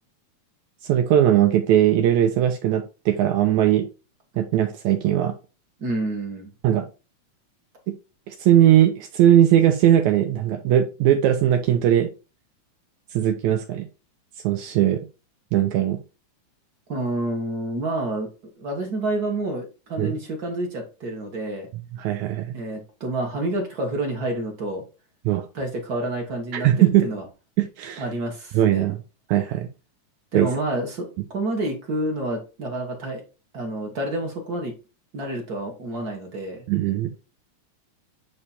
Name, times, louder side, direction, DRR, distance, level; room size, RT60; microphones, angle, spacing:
voice 1, 0.8-3.9 4.4-5.3 6.6-6.9 7.9-8.0 8.3-12.1 13.1-13.9 14.4-15.0 15.5-16.0 20.0-20.2 22.0-22.6 25.3-25.5 26.5-27.1 27.6-28.1 28.5-29.0 29.3-29.7 30.3-30.5 36.7-37.1, right 11 dB, 75° right, 5 dB, 2.0 m, -19 dB
voice 2, 5.8-6.5 16.9-18.3 18.6-21.7 22.5-24.8 25.5-27.2 28.0-28.9 30.3-31.1 31.3-33.2 33.5-34.7 35.1-36.6, right 1 dB, 40° right, 1 dB, 1.5 m, -28 dB
8.5 x 3.2 x 4.1 m, 0.31 s
omnidirectional pair, 3.5 m